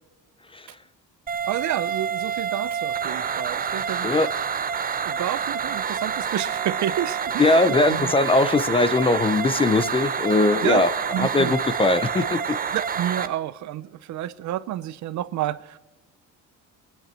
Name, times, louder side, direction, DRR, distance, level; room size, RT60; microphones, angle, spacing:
sound 1, 1.3-13.3, right 7 dB, 25° right, 0.8 m, -28 dB
voice 1, 1.5-4.3 5.0-8.1 10.6-10.8 11.1-11.6 12.7-15.8, right 12 dB, 60° right, 0.7 m, -29 dB
voice 2, 7.4-10.9 11.2-12.6, left 2 dB, 15° left, 0.4 m, -20 dB
20.0 x 10.5 x 4.4 m
cardioid pair, 145°, 33 cm